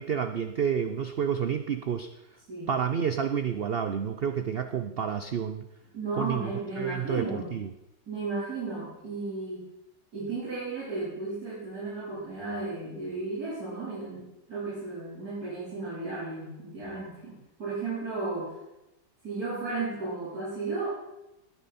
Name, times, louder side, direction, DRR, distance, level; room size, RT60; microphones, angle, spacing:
voice 1, 0.0-2.1 2.7-5.7 6.2-6.5 6.8-7.7, right 7 dB, 90° right, 8 dB, 0.5 m, -29 dB
voice 2, 5.9-7.5 8.1-9.6 10.1-14.2 14.5-18.5 19.2-20.9, right 3 dB, 60° right, -10 dB, 4.6 m, -34 dB
18.5 x 10.0 x 4.2 m, 0.94 s
omnidirectional pair, 1.8 m